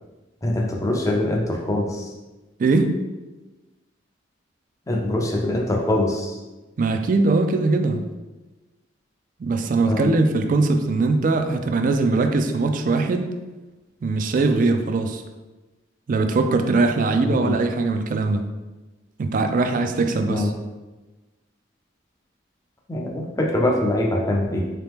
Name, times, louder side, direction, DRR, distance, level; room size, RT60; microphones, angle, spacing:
voice 1, 0.4-2.1 4.9-6.4 9.9-10.1 17.2-17.5 20.3-20.5 22.9-24.7, left 1 dB, 15° left, 0 dB, 0.5 m, -23 dB
voice 2, 2.6-2.9 6.8-8.0 9.4-13.3 14.0-15.2 16.1-18.5 19.2-20.5, right 3 dB, 45° right, 7 dB, 0.3 m, -21 dB
3.8 x 2.9 x 3.5 m, 1.1 s
head